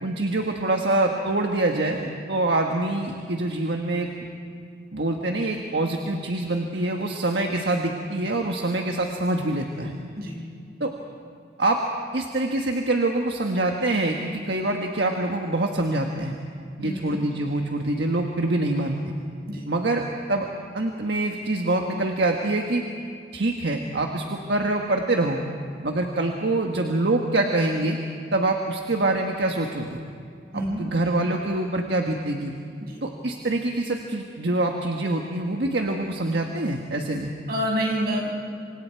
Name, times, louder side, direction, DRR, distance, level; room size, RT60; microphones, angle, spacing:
voice 1, 0.0-4.1 4.9-9.9 10.8-10.9 11.6-11.8 12.1-16.3 16.8-19.1 19.7-20.0 20.3-20.5 20.7-22.8 23.3-25.4 25.8-28.0 28.3-30.0 30.5-32.5 33.0-37.3, right 2 dB, 80° right, 2 dB, 1.4 m, -25 dB
voice 2, 16.8-17.2 19.5-19.7 30.5-30.8 32.8-33.0 37.5-38.3, equal, 60° right, -1 dB, 6.1 m, -28 dB
27.5 x 25.0 x 4.6 m, 2.3 s
head